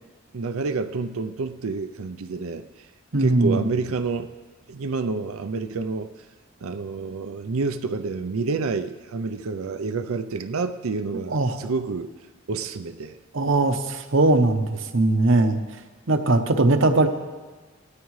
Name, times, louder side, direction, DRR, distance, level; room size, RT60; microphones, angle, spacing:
voice 1, 0.3-2.9 3.2-4.3 4.7-6.1 6.6-12.1 12.5-13.2, right 4 dB, 80° right, 9 dB, 0.5 m, -29 dB
voice 2, 3.1-3.7 11.3-11.6 13.3-15.6 16.1-17.1, right 2 dB, 65° right, 7 dB, 0.8 m, -20 dB
18.5 x 13.0 x 3.2 m, 1.3 s
head